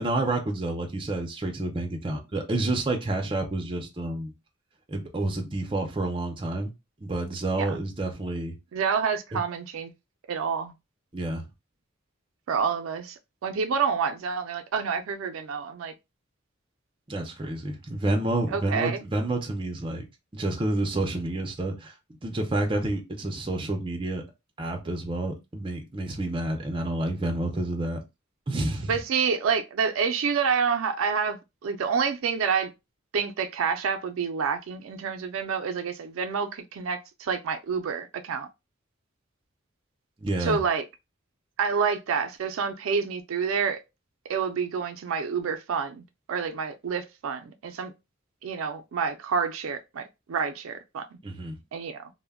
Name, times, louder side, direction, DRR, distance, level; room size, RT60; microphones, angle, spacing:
voice 1, 0.0-4.3 4.9-6.7 7.0-8.5 9.3-9.4 11.1-11.5 17.1-20.1 20.3-21.9 22.2-24.2 24.6-28.0 28.5-29.0 40.2-40.6 51.2-51.6, right 2 dB, 25° right, 0.5 m, -29 dB
voice 2, 8.7-9.9 10.3-10.7 12.5-15.9 18.5-19.0 28.9-32.7 33.1-38.5 40.4-40.8 41.6-43.8 44.3-46.0 46.3-47.9 48.4-51.1 51.7-52.1, right 6 dB, 80° right, 0.4 m, -28 dB
2.1 x 2.1 x 3.4 m
head